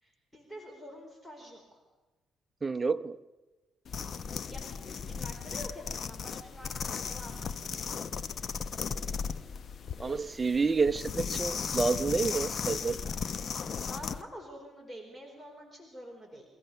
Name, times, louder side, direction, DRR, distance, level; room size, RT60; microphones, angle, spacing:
voice 1, 0.0-1.8 4.5-7.8 13.8-16.4, equal, 10° left, 1 dB, 4.5 m, -47 dB
voice 2, 2.6-3.2 10.0-13.0, right 4 dB, 25° right, 11 dB, 0.8 m, -29 dB
sound 1, 3.9-14.2, left 6 dB, 50° left, 1.0 m, -36 dB
24.5 x 15.5 x 6.9 m, 1.2 s
cardioid pair, 90°, 0 cm